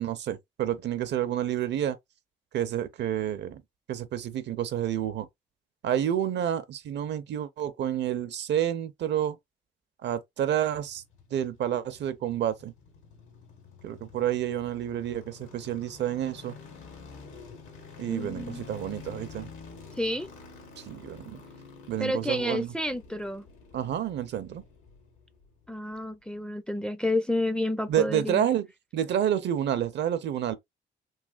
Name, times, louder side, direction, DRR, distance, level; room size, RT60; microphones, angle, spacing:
voice 1, 0.0-2.0 2.5-3.6 3.9-5.3 5.8-9.4 10.0-11.0 11.3-12.7 13.8-16.6 18.0-19.5 20.8-21.4 21.9-22.7 23.7-24.6 27.9-28.7 28.9-30.6, right 10 dB, 65° right, 0.6 m, -29 dB
sound 1, 10.5-25.7 25.9-26.0, left 5 dB, 85° left, 1.5 m, -49 dB
voice 2, 18.1-18.6 20.0-20.3 22.0-23.4 25.7-28.5, left 1 dB, 5° left, 0.4 m, -30 dB
3.2 x 3.0 x 2.3 m
cardioid pair, 90°, 20 cm